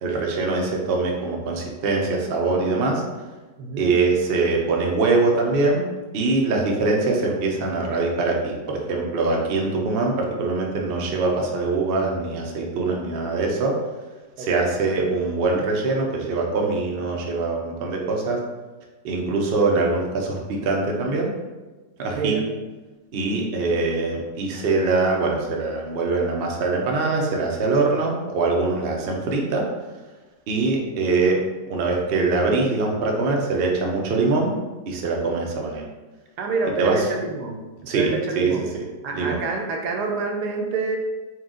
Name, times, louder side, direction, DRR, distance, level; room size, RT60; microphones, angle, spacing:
voice 1, 0.0-3.0 3.8-5.8 6.1-13.7 14.4-18.4 19.0-21.3 22.0-22.4 23.1-29.6 30.5-31.4 31.7-34.5 34.9-35.8 36.8-37.1 37.9-38.8 39.1-39.4, right 3 dB, 60° right, -1 dB, 0.6 m, -23 dB
voice 2, 3.6-3.9 14.4-14.7 22.1-22.4 36.4-37.6 37.9-38.6 39.0-41.0, right 4 dB, 80° right, 2 dB, 1.2 m, -27 dB
4.3 x 2.3 x 3.7 m, 1.2 s
omnidirectional pair, 1.8 m